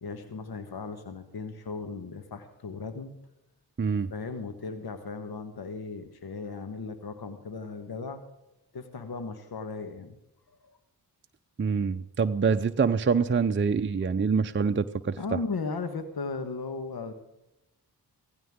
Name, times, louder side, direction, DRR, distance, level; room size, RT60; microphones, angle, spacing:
voice 1, 0.0-3.1 4.1-8.2 8.7-10.2 10.5-10.8 15.2-17.1, left 4 dB, 65° left, 8 dB, 1.4 m, -36 dB
voice 2, 11.6-15.2, right 5 dB, 30° right, 8 dB, 0.6 m, -25 dB
17.0 x 15.5 x 3.6 m, 0.91 s
cardioid pair, 45°, 40 cm